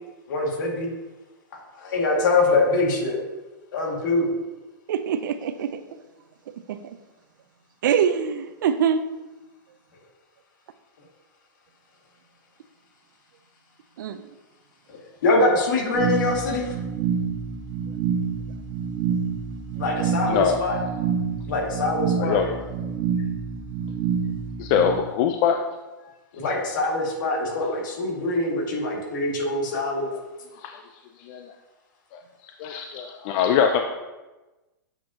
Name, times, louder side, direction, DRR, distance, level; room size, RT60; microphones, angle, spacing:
voice 1, 0.3-0.9 1.7-3.2 3.7-4.3 14.9-16.7 19.8-20.8 21.5-22.4 26.3-30.1, left 2 dB, 70° left, -1 dB, 2.0 m, -24 dB
voice 2, 4.9-6.0 6.7-7.0 7.8-9.0 14.0-14.3, right 8 dB, 70° right, 11 dB, 0.5 m, -24 dB
sound 1, 15.9-24.9, right 6 dB, 40° right, 1.2 m, -27 dB
voice 3, 22.2-22.6 24.6-25.6 30.6-30.8 31.2-31.5 32.1-32.2 32.6-33.8, left 7 dB, 40° left, 4 dB, 0.4 m, -22 dB
7.6 x 5.0 x 2.8 m, 1.1 s
hypercardioid pair, 140°, 11 cm